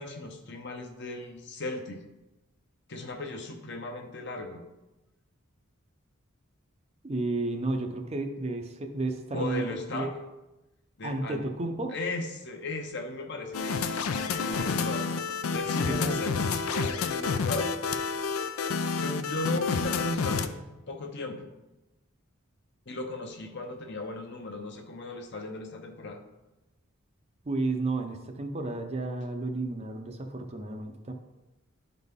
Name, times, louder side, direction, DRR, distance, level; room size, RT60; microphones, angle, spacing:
voice 1, 0.0-2.0 2.9-4.6 9.3-10.1 11.0-11.5 11.9-15.1 15.5-17.7 19.0-21.5 22.9-26.2, left 2 dB, 50° left, 4 dB, 0.8 m, -36 dB
voice 2, 7.0-10.1 11.0-12.0 15.9-16.3 27.4-31.1, right 2 dB, 30° right, 4 dB, 0.6 m, -32 dB
sound 1, 13.5-20.5, left 5 dB, 85° left, 0.5 m, -29 dB
11.5 x 4.0 x 3.6 m, 1.0 s
head